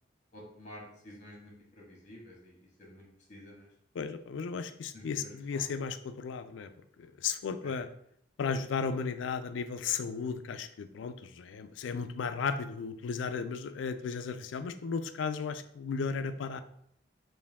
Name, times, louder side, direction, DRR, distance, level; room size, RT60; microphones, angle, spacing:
voice 1, 0.3-3.7 4.9-5.6 7.6-7.8, left 1 dB, 40° left, -3 dB, 1.4 m, -51 dB
voice 2, 4.0-6.7 7.2-7.9 8.4-16.6, left 5 dB, 80° left, 10 dB, 0.3 m, -35 dB
4.5 x 2.6 x 3.5 m, 0.69 s
head